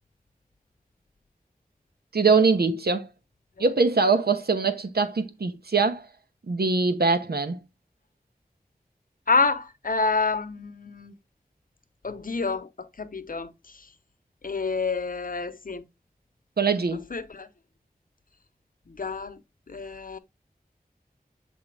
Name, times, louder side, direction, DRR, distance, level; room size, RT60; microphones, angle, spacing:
voice 1, 2.1-3.1 3.6-6.1 6.5-7.6 16.6-17.1, right 4 dB, 85° right, 1.0 m, -22 dB
voice 2, 9.3-11.1 12.0-13.5 14.4-15.8 17.1-17.5 18.9-19.4 19.7-20.2, left 4 dB, 60° left, 0.8 m, -28 dB
7.7 x 2.7 x 4.7 m
wide cardioid pair, 50°, 16 cm